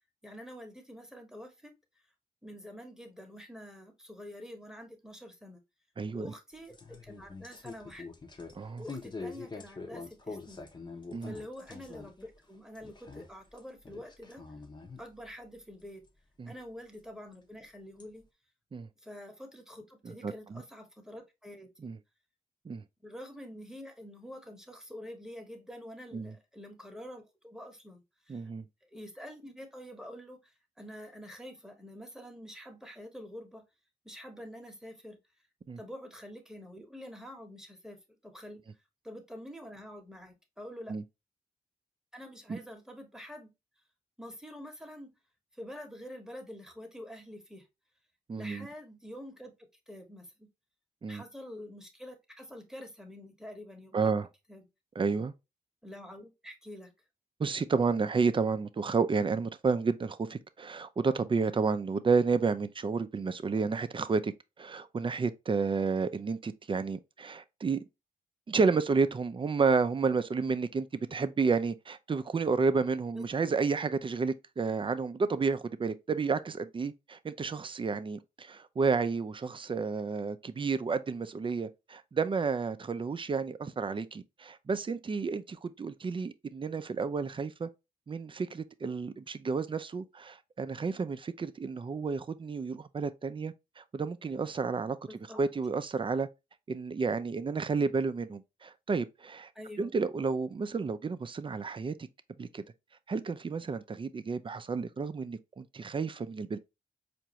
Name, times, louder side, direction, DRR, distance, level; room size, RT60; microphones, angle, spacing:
voice 1, 0.2-1.7 2.4-5.6 6.1-8.1 8.8-10.7 11.2-14.4 15.0-16.0 16.5-18.2 19.0-21.7 23.0-28.4 28.9-30.5 30.8-33.6 34.0-35.2 35.8-38.0 38.2-38.6 39.0-41.0 42.1-43.5 44.2-45.1 45.5-47.7 48.4-49.5 49.9-50.5 51.1-54.2 54.5-54.7 55.8-56.9 73.1-73.5 95.1-95.4 99.5-99.9, equal, 5° right, 1.0 m, -47 dB
voice 2, 6.0-6.3 8.5-8.8 11.1-11.4 16.4-16.5 18.7-18.9 20.0-20.6 21.8-22.0 22.7-22.8 26.1-26.4 28.3-28.6 35.7-35.8 40.9-41.0 42.5-42.6 48.3-48.7 51.0-51.2 53.9-54.3 55.0-55.3 57.4-64.3 64.6-67.8 68.5-87.7 88.1-95.0 95.4-96.3 96.7-99.5 99.8-101.9 102.4-102.6 103.1-106.6, right 4 dB, 35° right, 0.4 m, -31 dB
sound 1, 6.5-12.3 12.5-13.6 13.8-15.0 16.1-16.2 17.3-17.4 18.0-18.1, left 4 dB, 30° left, 0.8 m, -45 dB
4.5 x 2.6 x 3.0 m
cardioid pair, 55°, 16 cm